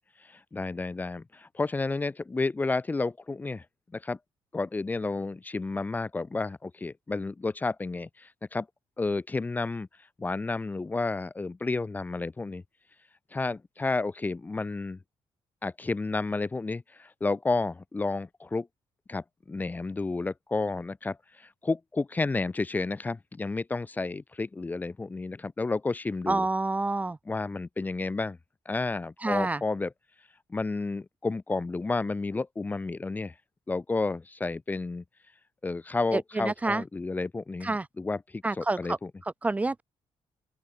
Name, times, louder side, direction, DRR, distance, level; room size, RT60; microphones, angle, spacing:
voice 1, 0.2-3.6 3.9-4.2 4.5-8.7 9.0-9.9 10.2-12.6 13.3-15.0 15.6-18.7 19.1-26.5 27.3-28.4 28.6-29.9 30.5-33.3 33.7-35.0 35.6-39.1, left 3 dB, 15° left, 1.2 m, -31 dB
voice 2, 26.3-27.2 29.2-29.6 36.1-36.8 37.6-37.9 38.4-39.0 39.4-39.8, right 2 dB, 15° right, 1.1 m, -28 dB
open air
cardioid pair, 150°, 10 cm